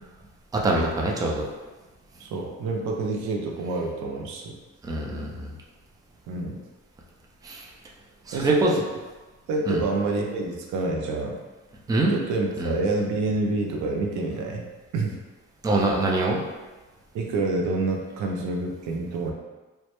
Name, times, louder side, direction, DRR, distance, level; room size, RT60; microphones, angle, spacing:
voice 1, 0.5-1.5 4.8-5.5 7.4-7.7 8.3-8.7 9.7-9.8 11.9-12.1 12.6-12.8 15.6-16.4, right 2 dB, 15° right, -2 dB, 0.3 m, -24 dB
voice 2, 2.2-4.6 6.3-6.6 8.3-8.8 9.5-11.4 12.1-14.6 14.9-15.2 17.1-19.3, right 3 dB, 80° right, 1 dB, 0.5 m, -27 dB
2.1 x 2.0 x 2.8 m, 1.2 s
cardioid pair, 90°, 30 cm